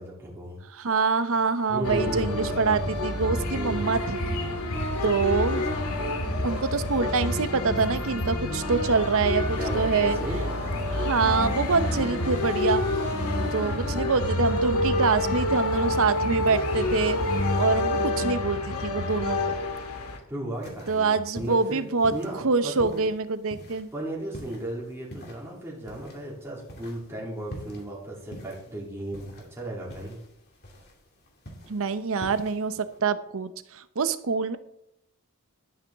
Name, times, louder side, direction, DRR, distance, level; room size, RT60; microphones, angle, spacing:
voice 1, 0.0-0.6 1.7-2.9 3.5-4.0 9.6-10.6 20.3-23.1 23.9-30.2, right 1 dB, 10° right, -5 dB, 2.9 m, -35 dB
voice 2, 0.8-4.6 5.0-5.6 6.4-10.2 10.9-12.8 13.5-17.2 17.6-19.5 20.9-22.1 22.4-23.9 31.7-34.6, right 4 dB, 65° right, 12 dB, 0.7 m, -25 dB
sound 1, 1.8-20.2, left 1 dB, 80° left, 2.1 m, -28 dB
sound 2, 20.5-33.0, equal, 45° left, 2.6 m, -46 dB
12.0 x 10.0 x 3.5 m, 0.77 s
head